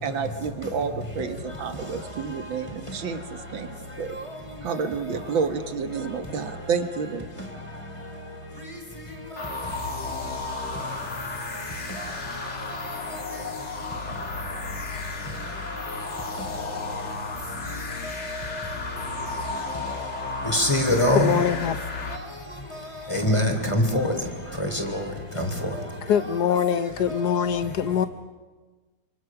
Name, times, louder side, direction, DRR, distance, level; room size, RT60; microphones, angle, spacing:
voice 1, 0.0-3.7 4.0-4.1 4.6-7.3, right 5 dB, 70° right, 8 dB, 2.2 m, -29 dB
sound 1, 9.4-22.2, left 3 dB, 35° left, 1.9 m, -33 dB
voice 2, 20.4-21.4 23.1-24.1 24.6-25.0 25.4-25.5, left 1 dB, 15° left, 3 dB, 3.1 m, -22 dB
voice 3, 21.1-21.8 26.1-28.1, left 8 dB, 55° left, 12 dB, 1.5 m, -23 dB
26.5 x 26.0 x 6.0 m, 1.3 s
omnidirectional pair, 2.3 m